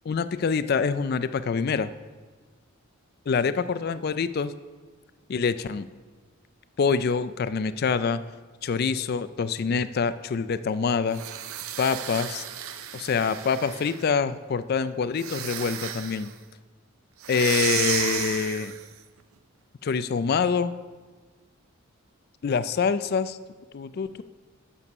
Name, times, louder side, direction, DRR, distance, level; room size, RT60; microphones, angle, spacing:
voice 1, 0.1-1.9 3.3-4.5 5.3-5.9 6.8-8.2 8.6-11.2 11.8-12.4 12.9-16.3 17.3-18.7 19.8-20.7 22.4-23.4 23.7-24.2, left 5 dB, 45° left, 14 dB, 0.3 m, -25 dB
sound 1, 11.1-14.1 15.1-16.3 17.2-18.9, right 9 dB, 85° right, 0.5 m, -33 dB
8.4 x 7.0 x 5.3 m, 1.3 s
head